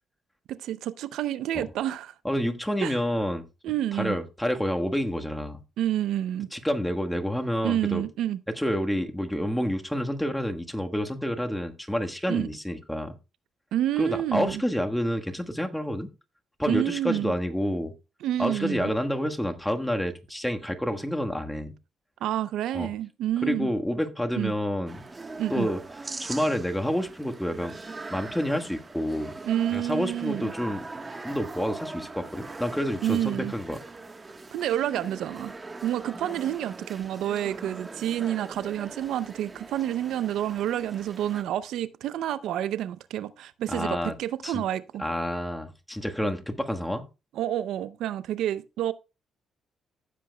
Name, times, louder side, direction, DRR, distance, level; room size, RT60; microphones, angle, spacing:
voice 1, 0.5-2.1 2.8-3.0 3.6-4.2 5.8-6.5 7.6-8.4 12.3-12.5 13.7-14.6 16.7-17.3 18.2-18.9 22.2-23.7 24.4-24.5 25.4-25.7 29.4-30.5 33.0-33.5 34.5-35.5 35.8-45.1 47.3-48.9, right 12 dB, 80° right, 0.5 m, -29 dB
voice 2, 2.2-3.4 4.0-5.6 6.5-8.0 8.5-13.1 14.0-16.1 16.6-17.9 18.4-21.7 22.7-22.9 23.4-25.0 25.5-25.8 26.2-27.7 28.1-29.3 29.7-30.9 31.2-33.8 43.7-44.1 44.4-44.6 45.0-47.1, equal, 5° left, 1.3 m, -28 dB
sound 1, 24.9-41.4, right 3 dB, 25° right, 1.2 m, -41 dB
15.5 x 7.6 x 2.2 m
cardioid pair, 90°, 0 cm